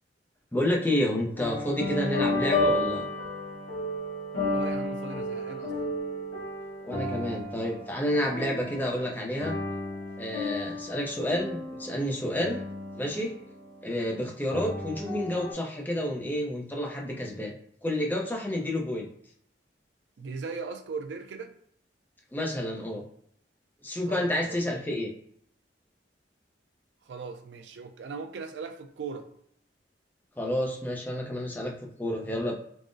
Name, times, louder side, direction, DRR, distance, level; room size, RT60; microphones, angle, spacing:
voice 1, 0.5-3.1 6.8-9.6 10.2-12.6 13.0-13.3 13.8-17.5 17.8-19.1 22.3-23.0 23.8-25.1 30.4-32.5, left 1 dB, 10° left, 0.5 m, -29 dB
sound 1, 1.1-14.0 14.5-15.5, left 1 dB, 75° left, 1.2 m, -32 dB
voice 2, 4.5-5.9 20.2-21.5 24.1-24.6 27.0-29.3, right 4 dB, 80° right, 0.4 m, -39 dB
3.5 x 2.0 x 2.5 m
head